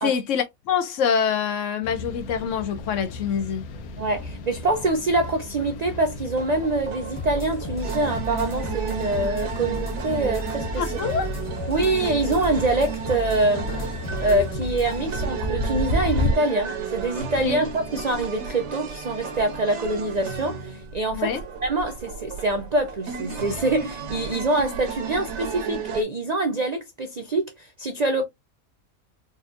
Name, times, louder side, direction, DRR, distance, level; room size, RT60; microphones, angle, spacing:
voice 1, 0.0-3.7 10.8-11.3 17.4-17.6 21.1-21.4, left 7 dB, 70° left, 0.9 m, -25 dB
sound 1, 1.8-16.3, left 2 dB, 85° left, 1.1 m, -33 dB
voice 2, 4.0-10.9 11.7-13.7 14.2-21.3 21.6-28.2, right 2 dB, 90° right, 0.3 m, -25 dB
sound 2, 6.3-26.0, right 6 dB, 60° right, 1.1 m, -34 dB
sound 3, 7.2-15.0, left 1 dB, 15° left, 0.6 m, -34 dB
4.1 x 2.5 x 2.4 m
omnidirectional pair, 1.5 m